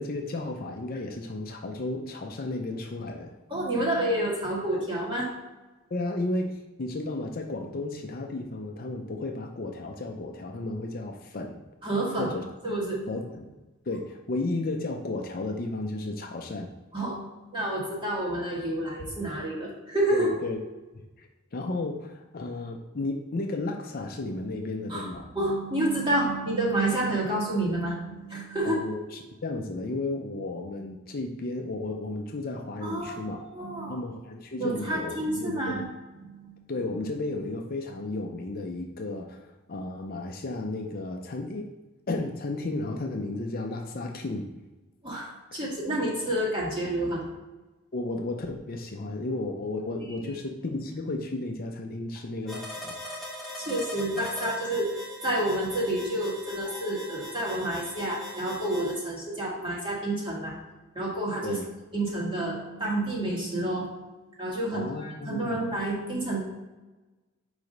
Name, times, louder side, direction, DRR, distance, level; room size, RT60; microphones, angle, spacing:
voice 1, 0.0-3.4 5.9-11.6 12.2-12.4 13.1-13.5 13.9-16.7 20.1-20.6 20.9-25.3 28.6-33.4 33.9-35.8 36.7-41.7 42.1-44.5 45.5-45.6 47.9-52.9 61.4-61.7 64.7-65.6, left 2 dB, 40° left, 3 dB, 0.5 m, -33 dB
voice 2, 3.5-5.3 11.8-12.3 12.6-13.1 16.9-17.3 17.5-20.3 24.9-25.1 25.3-28.8 32.8-34.0 34.6-35.9 36.2-36.6 45.0-47.2 50.2-50.3 53.6-60.6 61.0-61.6 61.9-63.9 64.4-66.4, right 1 dB, 25° right, -5 dB, 1.9 m, -29 dB
sound 1, 52.5-59.0, left 1 dB, ahead, 1.1 m, -40 dB
4.8 x 4.8 x 5.2 m, 1.1 s
head